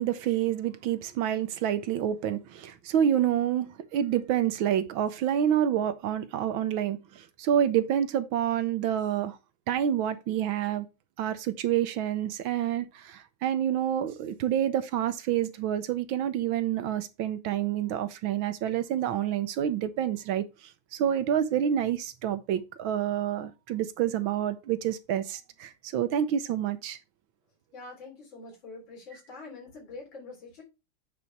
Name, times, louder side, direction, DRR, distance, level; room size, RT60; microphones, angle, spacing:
voice 1, 0.0-9.4 9.7-10.9 11.2-27.0, right 10 dB, 75° right, 1.4 m, -28 dB
voice 2, 27.7-30.6, left 3 dB, 60° left, 4.1 m, -45 dB
8.6 x 4.0 x 4.5 m
omnidirectional pair, 2.4 m